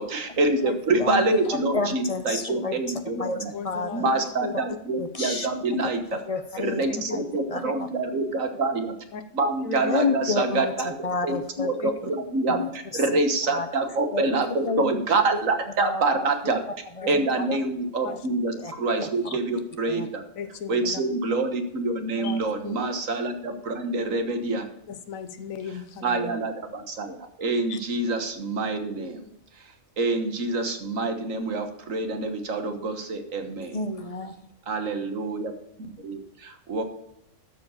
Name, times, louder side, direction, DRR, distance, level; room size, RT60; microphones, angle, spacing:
voice 1, 0.0-3.5 3.9-6.0 6.6-8.9 9.3-10.9 11.2-16.6 17.1-20.2 20.7-24.7 25.7-29.3 29.6-29.7 30.0-33.8 34.7-35.5 35.8-36.8, right 3 dB, 80° right, 7 dB, 1.7 m, -26 dB
voice 2, 1.0-1.4 1.7-2.7 3.2-3.4 3.6-4.1 5.0-5.5 6.1-6.8 7.1-7.9 9.9-11.7 12.5-13.2 13.5-13.7 14.1-14.2 14.6-15.0 15.8-16.3 17.0-17.5 18.0-18.2 18.6-18.7 19.0-19.4 19.9-20.1 33.7-34.5, left 3 dB, 35° left, 8 dB, 0.7 m, -30 dB
voice 3, 2.5-2.8 3.5-4.5 6.9-7.2 9.1-9.2 9.6-9.8 11.8-11.9 17.1-17.3 18.0-18.2 20.4-20.9 22.2-22.7 24.9-26.3 27.7-27.8, left 6 dB, 85° left, 9 dB, 1.3 m, -36 dB
12.5 x 4.8 x 6.4 m, 0.79 s
omnidirectional pair, 1.4 m